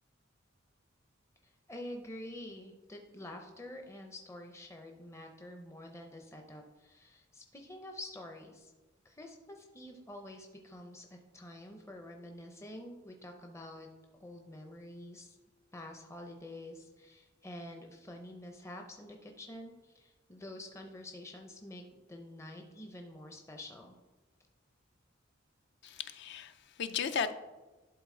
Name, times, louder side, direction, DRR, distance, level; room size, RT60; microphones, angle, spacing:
voice 1, 1.4-8.7 9.0-13.9 14.2-15.4 15.7-21.8 22.1-24.0, left 1 dB, 15° left, 0.6 m, -48 dB
voice 2, 25.8-27.3, left 6 dB, 60° left, 0.5 m, -35 dB
11.5 x 3.9 x 3.7 m
head